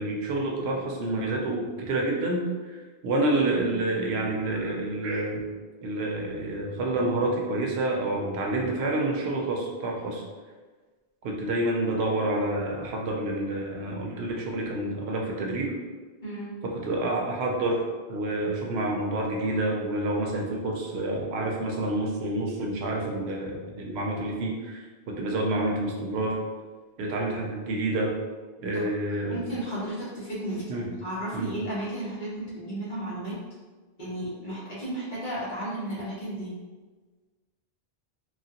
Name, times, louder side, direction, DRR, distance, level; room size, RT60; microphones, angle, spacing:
voice 1, 0.0-2.7 3.0-5.4 5.8-10.2 11.2-15.7 16.6-17.8 18.1-26.4 27.0-28.1 28.6-29.4 30.7-30.9 31.3-31.5, right 2 dB, 80° right, 0 dB, 0.8 m, -28 dB
voice 2, 16.2-16.6 28.7-28.9 29.3-33.4 34.0-36.5, right 1 dB, 50° left, -9 dB, 1.2 m, -34 dB
3.0 x 2.4 x 2.7 m, 1.3 s
omnidirectional pair, 1.1 m